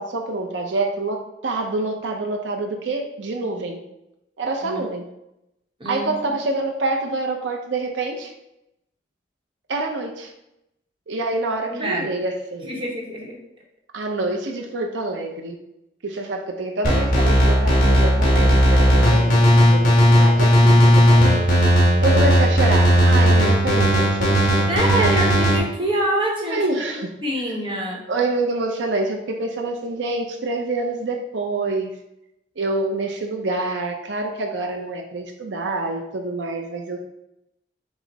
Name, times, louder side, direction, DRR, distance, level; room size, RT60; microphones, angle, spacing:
voice 1, 0.0-3.8 4.4-5.1 5.8-8.3 9.7-10.3 11.1-12.8 13.9-15.6 16.0-21.3 22.0-25.2 25.5-25.6 26.5-27.1 28.1-31.9 32.6-37.0, right 2 dB, 80° right, 2 dB, 0.6 m, -26 dB
voice 2, 11.7-12.1 12.6-13.4 21.9-22.0 24.7-28.0, right 1 dB, 30° right, -2 dB, 0.9 m, -26 dB
sound 1, 16.8-25.6, equal, 45° left, 1.5 m, -15 dB
6.0 x 2.1 x 3.9 m, 0.86 s
head